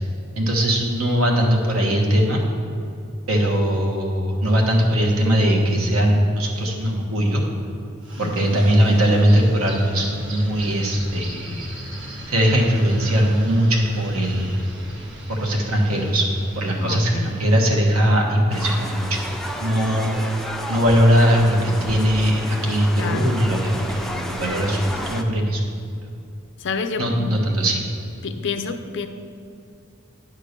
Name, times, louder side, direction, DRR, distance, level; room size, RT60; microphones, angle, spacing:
voice 1, 0.4-2.4 3.3-7.4 8.2-11.8 12.3-14.6 15.3-16.2 16.6-19.2 19.6-20.4 20.7-24.8 25.1-25.6 27.0-27.8, equal, 75° right, 0 dB, 1.3 m, -20 dB
sound 1, 8.0-17.9, equal, 60° right, 1.4 m, -37 dB
voice 2, 8.2-8.6 16.8-17.3 23.0-23.3 26.6-27.3 28.2-29.1, left 4 dB, 55° left, 8 dB, 0.5 m, -29 dB
sound 2, 18.5-25.2, equal, ahead, 0.4 m, -31 dB
9.8 x 3.7 x 6.6 m, 2.7 s
head